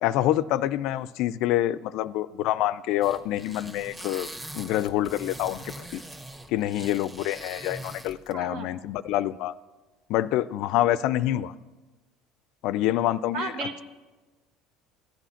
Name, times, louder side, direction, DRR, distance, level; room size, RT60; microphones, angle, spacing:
voice 1, 0.0-4.3 4.5-6.0 6.5-9.5 10.1-11.5 12.6-13.5, left 13 dB, 65° left, 17 dB, 0.4 m, -26 dB
sound 1, 3.0-8.3, right 1 dB, 20° right, 1.6 m, -42 dB
voice 2, 8.3-8.7 13.3-13.8, right 4 dB, 65° right, 5 dB, 1.7 m, -33 dB
15.5 x 9.1 x 5.7 m, 1.3 s
hypercardioid pair, 80°, 0 cm